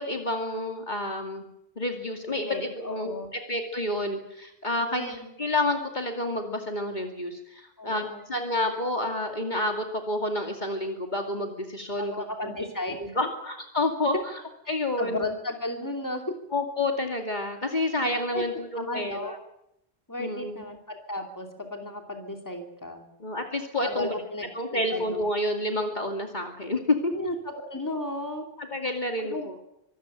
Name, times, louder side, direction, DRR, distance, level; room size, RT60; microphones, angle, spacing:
voice 1, 0.0-1.4 1.8-12.6 13.2-14.1 14.7-15.2 16.5-19.4 20.2-20.6 23.2-24.1 24.5-27.1 28.6-29.5, left 1 dB, 45° left, 4 dB, 2.6 m, -29 dB
voice 2, 2.5-3.3 4.8-5.3 7.8-8.3 12.0-13.2 14.1-14.2 14.6-16.3 18.3-18.4 18.8-19.3 20.1-23.1 23.8-25.2 27.1-28.5 29.2-29.5, left 1 dB, 15° left, 4 dB, 2.9 m, -34 dB
24.5 x 14.0 x 9.1 m, 0.81 s
omnidirectional pair, 1.1 m